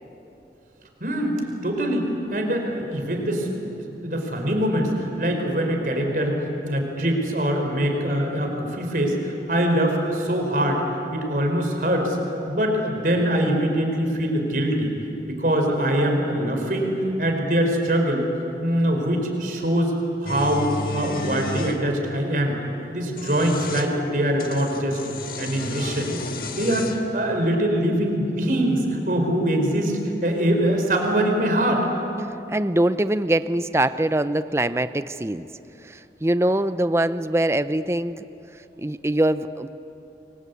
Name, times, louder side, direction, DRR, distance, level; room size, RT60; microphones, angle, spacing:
voice 1, 1.0-3.7 3.9-4.9 5.2-6.4 6.6-10.8 11.1-12.2 12.5-14.9 15.2-18.3 18.6-19.9 20.2-20.7 20.9-22.6 22.9-25.0 25.4-26.2 26.5-31.9, right 1 dB, 50° right, 2 dB, 4.8 m, -23 dB
sound 1, 20.3-21.8 23.0-23.9 24.4-27.1, left 3 dB, 55° left, 1.8 m, -33 dB
voice 2, 32.2-35.5 35.8-38.3 38.8-39.7, right 1 dB, 15° right, 12 dB, 0.6 m, -23 dB
29.5 x 23.5 x 8.4 m, 3.0 s
head